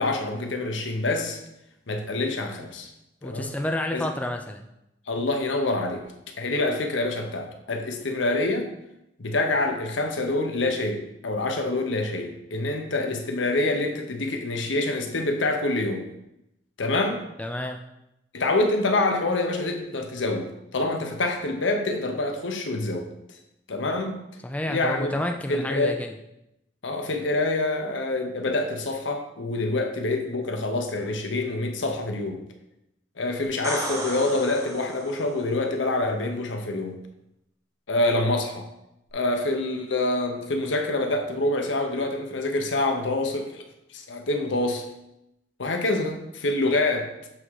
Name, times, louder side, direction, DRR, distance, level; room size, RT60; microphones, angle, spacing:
voice 1, 0.0-1.4 1.9-2.9 3.2-3.5 3.9-4.1 5.1-6.0 6.4-8.7 9.2-16.0 16.8-17.2 18.3-23.1 23.7-24.2 24.7-25.1 25.5-26.0 26.8-32.4 33.2-37.0 37.9-38.7 39.1-43.6 43.9-44.8 45.6-47.1, left 2 dB, 80° left, 4 dB, 0.9 m, -26 dB
voice 2, 3.2-4.6 17.4-17.8 24.4-26.1, left 1 dB, 5° left, 3 dB, 0.4 m, -29 dB
sound 1, 33.4-35.4 39.1-39.2, right 1 dB, 15° right, 0.9 m, -34 dB
7.6 x 3.7 x 4.8 m, 0.86 s
head